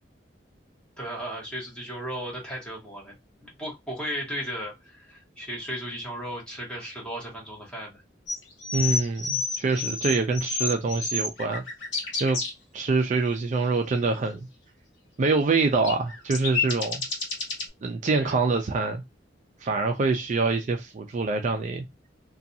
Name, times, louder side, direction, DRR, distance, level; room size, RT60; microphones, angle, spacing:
voice 1, 1.0-3.1 3.4-8.0 18.1-18.4, equal, 5° left, 1.2 m, -35 dB
sound 1, 8.3-12.5 15.8-17.7, left 4 dB, 85° left, 0.9 m, -29 dB
voice 2, 8.7-11.6 12.2-12.4 12.7-14.5 15.2-17.0 17.8-19.0 19.6-21.8, right 3 dB, 40° right, 0.4 m, -25 dB
2.5 x 2.3 x 2.6 m
head